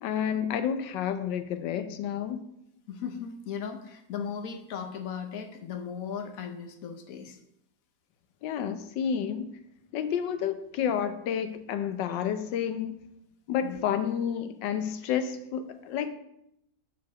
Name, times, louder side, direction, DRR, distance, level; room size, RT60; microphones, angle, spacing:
voice 1, 0.0-2.4 8.4-9.5 9.9-13.0 13.5-16.1, left 8 dB, 75° left, 1.3 m, -30 dB
voice 2, 2.9-7.4 13.6-13.8, left 7 dB, 60° left, 1.0 m, -37 dB
5.7 x 4.8 x 6.1 m
omnidirectional pair, 2.0 m